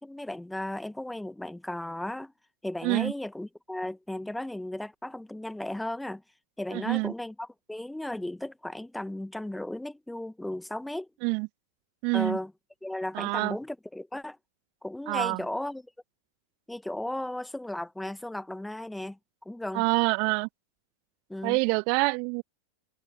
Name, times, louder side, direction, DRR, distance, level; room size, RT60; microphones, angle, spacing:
voice 1, 0.0-2.3 2.6-6.2 6.6-11.1 12.1-12.5 12.8-14.4 14.8-15.9 16.7-19.2 19.5-19.8 21.3-21.6, left 1 dB, 5° left, 1.8 m, -35 dB
voice 2, 6.7-7.1 11.2-11.5 12.0-12.4 13.1-13.6 15.1-15.4 19.7-20.5 21.4-22.4, right 35 dB, 45° right, 1.2 m, -26 dB
figure-of-eight pair, 90°, 0 cm